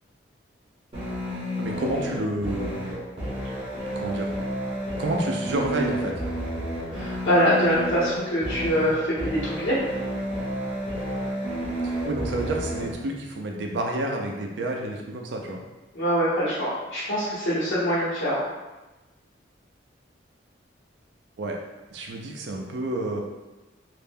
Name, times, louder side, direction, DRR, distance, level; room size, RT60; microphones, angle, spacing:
sound 1, 0.9-12.9, equal, 30° right, 0.7 m, -31 dB
voice 1, 1.6-3.0 4.0-4.3 5.0-6.2 11.8-15.6 21.4-21.6 21.9-23.2, right 2 dB, 70° right, 1 dB, 0.4 m, -29 dB
voice 2, 6.9-8.9 9.2-9.8 15.9-18.4, equal, 85° left, -14 dB, 1.0 m, -24 dB
2.5 x 2.1 x 3.4 m, 1.1 s
head